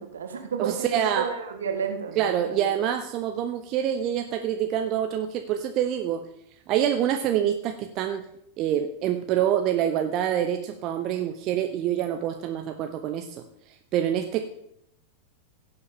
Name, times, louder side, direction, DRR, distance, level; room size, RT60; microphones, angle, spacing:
voice 1, 0.0-2.8, right 6 dB, 65° right, 6 dB, 1.5 m, -32 dB
voice 2, 0.6-1.3 2.2-6.2 6.7-8.2 8.6-13.4 13.9-14.4, right 10 dB, 40° right, 6 dB, 0.7 m, -26 dB
16.5 x 8.0 x 3.6 m, 0.75 s
figure-of-eight pair, 90°, 0 cm